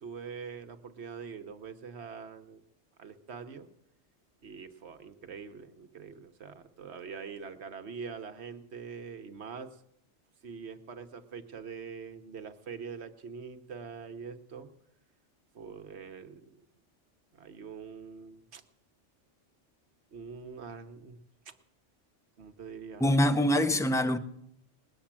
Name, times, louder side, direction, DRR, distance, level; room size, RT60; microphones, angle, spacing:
voice 1, 0.0-2.6 3.0-3.7 4.4-9.8 10.4-14.7 15.5-16.5 17.3-18.6 20.1-21.2 21.5-21.6 22.4-23.0, right 5 dB, 65° right, 1.2 m, -44 dB
voice 2, 23.0-24.2, left 1 dB, 5° left, 0.5 m, -24 dB
20.0 x 7.2 x 8.8 m
omnidirectional pair, 1.2 m